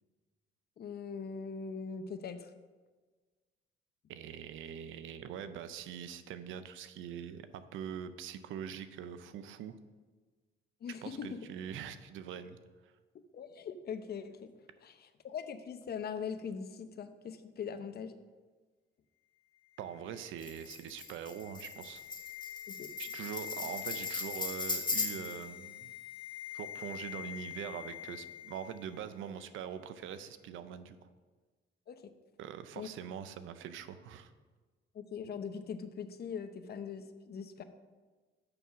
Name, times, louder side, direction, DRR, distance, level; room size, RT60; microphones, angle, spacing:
voice 1, 0.8-2.5 10.8-11.4 13.3-14.5 14.8-18.1 22.7-22.9 31.9-32.0 32.8-32.9 34.9-37.6, left 6 dB, 50° left, 10 dB, 0.7 m, -41 dB
voice 2, 4.1-9.8 11.0-12.6 19.8-22.0 23.0-25.9 26.5-31.0 32.4-34.3, right 8 dB, 85° right, 12 dB, 0.6 m, -43 dB
sound 1, 19.7-29.0 29.3-29.4, left 12 dB, 85° left, 1.3 m, -46 dB
Tambourine, 20.4-25.4, left 3 dB, 20° left, 1.3 m, -38 dB
6.8 x 5.5 x 6.0 m, 1.4 s
cardioid pair, 90°, 20 cm